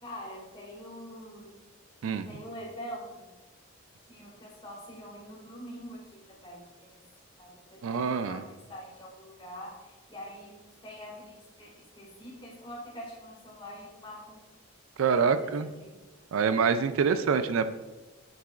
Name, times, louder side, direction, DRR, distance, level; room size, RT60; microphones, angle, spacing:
voice 1, 0.0-1.6 2.3-3.3 4.1-7.0 7.4-14.4 15.3-16.0, equal, 25° left, -4 dB, 2.0 m, -45 dB
voice 2, 7.8-8.4 15.0-15.7 16.3-17.7, right 5 dB, 75° right, 11 dB, 0.4 m, -26 dB
7.3 x 6.0 x 2.4 m, 1.1 s
head